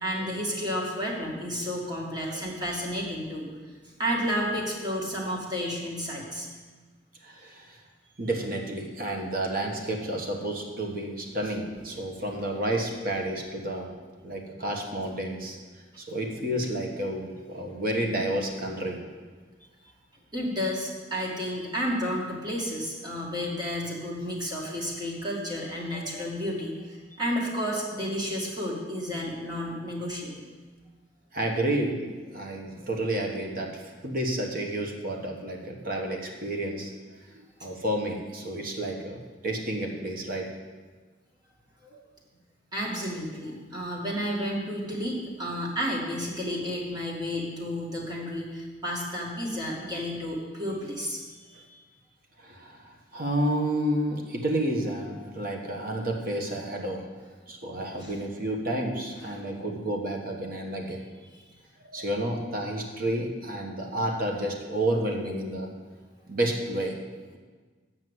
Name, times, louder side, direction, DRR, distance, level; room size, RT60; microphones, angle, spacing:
voice 1, 0.0-3.5 4.0-6.5 20.3-30.3 42.7-51.7 58.0-58.1 59.3-59.4 61.3-61.4, equal, 25° right, -3 dB, 2.0 m, -31 dB
voice 2, 1.6-2.4 5.6-5.7 7.2-7.8 8.2-13.9 14.2-15.6 16.0-19.0 25.9-26.3 31.3-36.9 37.6-40.5 41.9-42.0 52.4-57.0 57.5-61.0 61.9-65.7 66.3-66.9, right 1 dB, 50° right, 1 dB, 1.4 m, -30 dB
7.7 x 6.3 x 8.1 m, 1.4 s
head